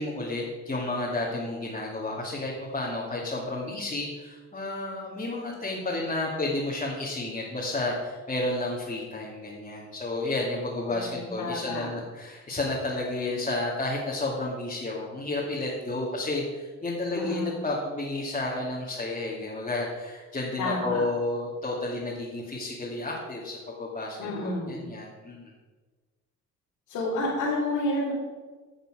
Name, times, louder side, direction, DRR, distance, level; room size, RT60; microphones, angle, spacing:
voice 1, 0.0-25.5, left 2 dB, 25° left, -5 dB, 2.4 m, -31 dB
voice 2, 10.9-11.9 17.1-17.6 20.6-21.0 24.2-24.8 26.9-28.1, left 1 dB, 85° left, -8 dB, 3.7 m, -30 dB
11.5 x 6.7 x 6.3 m, 1.3 s
cardioid pair, 90°, 30 cm